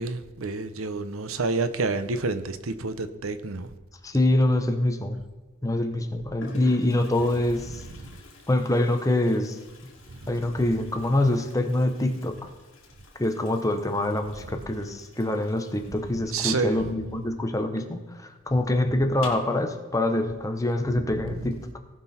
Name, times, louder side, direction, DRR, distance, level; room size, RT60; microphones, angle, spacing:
voice 1, 0.0-3.7 7.7-8.2 10.1-10.3 16.3-16.9 20.9-21.6, right 3 dB, 75° right, 0.8 m, -30 dB
voice 2, 4.0-5.2 5.6-7.8 8.5-9.6 10.3-12.5 13.2-21.8, left 1 dB, 15° left, 1.0 m, -25 dB
Toilet flush, 4.9-5.3 6.0-6.1 6.4-17.7 17.9-18.0 18.3-18.4 19.1-19.6, left 3 dB, 65° left, 2.6 m, -50 dB
18.0 x 6.1 x 4.3 m
head